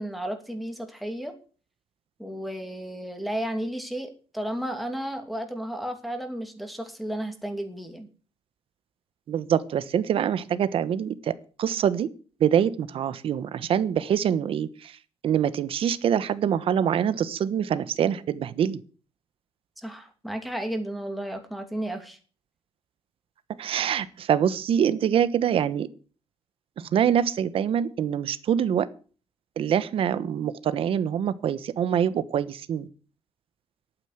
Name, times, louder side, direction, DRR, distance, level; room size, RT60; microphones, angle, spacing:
voice 1, 0.0-1.3 2.2-8.1 19.8-22.2, right 1 dB, ahead, 4 dB, 2.6 m, -33 dB
voice 2, 9.3-11.3 11.6-12.1 12.4-14.9 15.2-18.8 23.6-25.9 26.8-28.9 29.6-32.9, right 9 dB, 65° right, 15 dB, 1.2 m, -25 dB
11.5 x 9.2 x 8.0 m, 0.38 s
wide cardioid pair, 165°, 10 cm